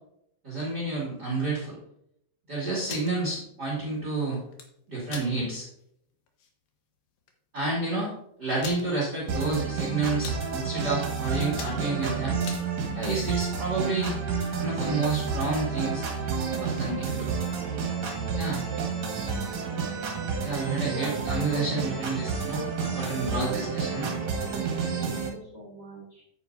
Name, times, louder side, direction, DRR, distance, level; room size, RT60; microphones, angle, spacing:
voice 1, 0.4-1.8 2.5-4.4 4.9-5.6 7.5-8.1 8.4-12.4 12.9-14.1 14.6-16.1 16.6-17.3 18.4-18.6 20.4-24.1, right 3 dB, 30° right, -6 dB, 2.4 m, -30 dB
sound 1, 2.7-3.1 4.3-4.7 5.1-5.3 5.8-5.9 6.3-6.5 7.3-7.4 7.6-7.7 8.6-8.9 9.5-9.8 10.1-10.4 11.0-11.2 11.5-12.6, left 6 dB, 70° left, 2.8 m, -40 dB
sound 2, 9.3-25.3, right 5 dB, 55° right, 2.8 m, -30 dB
sound 3, 16.3-16.5 18.7-18.9 21.1-21.4 23.5-23.9, right 10 dB, 85° right, 2.5 m, -37 dB
voice 2, 20.8-22.3 22.6-23.7 25.0-26.2, equal, 20° left, -6 dB, 3.9 m, -41 dB
10.0 x 8.9 x 2.7 m, 0.74 s
omnidirectional pair, 4.4 m